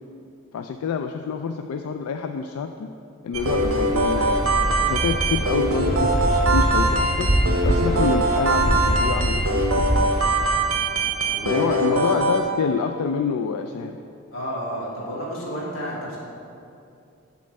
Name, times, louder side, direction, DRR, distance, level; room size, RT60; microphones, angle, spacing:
voice 1, 0.5-2.9 3.2-7.3 7.6-10.1 11.4-14.0, left 5 dB, 90° left, 6 dB, 0.3 m, -27 dB
Waves surf, 3.3-10.6, right 1 dB, 40° right, 1.1 m, -25 dB
sound 1, 3.3-12.4, right 2 dB, 70° right, 0.8 m, -23 dB
voice 2, 11.3-12.0 14.3-16.2, equal, 65° left, -5 dB, 1.9 m, -31 dB
7.7 x 4.2 x 6.3 m, 2.6 s
head